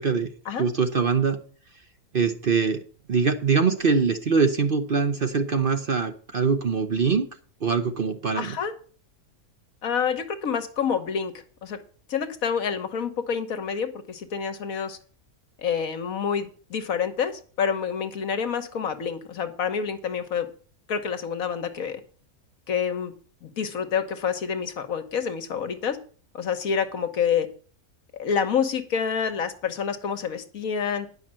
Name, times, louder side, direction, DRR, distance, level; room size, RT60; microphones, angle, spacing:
voice 1, 0.6-1.4 2.1-2.8 3.1-7.3 7.6-8.6, right 5 dB, 45° right, 8 dB, 0.8 m, -23 dB
voice 2, 8.4-8.7 9.8-11.8 12.1-15.0 15.6-20.5 20.9-22.0 22.7-23.1 23.4-26.0 26.3-27.5 28.1-31.1, left 7 dB, 70° left, 9 dB, 1.5 m, -28 dB
9.9 x 6.1 x 7.5 m, 0.42 s
omnidirectional pair, 1.5 m